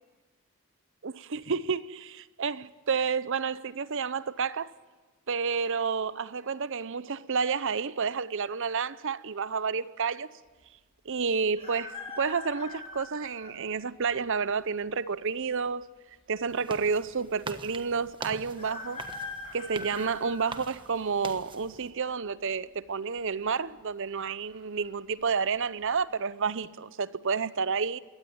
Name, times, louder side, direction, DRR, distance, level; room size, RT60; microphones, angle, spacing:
voice 1, 1.0-4.7 5.3-10.3 11.0-15.9 16.3-19.1 19.5-28.0, right 5 dB, 60° right, 0.7 m, -30 dB
sound 1, 11.6-13.6 14.3-14.4 15.5-16.1 16.4-16.5 16.7-16.8 18.6-21.2 21.7-22.1 23.2-23.6 23.9-24.0 24.5-24.9 25.3-25.5, left 3 dB, 30° left, 4.9 m, -42 dB
sound 2, 16.5-21.9, right 3 dB, 20° right, 1.2 m, -44 dB
22.5 x 17.5 x 9.3 m
head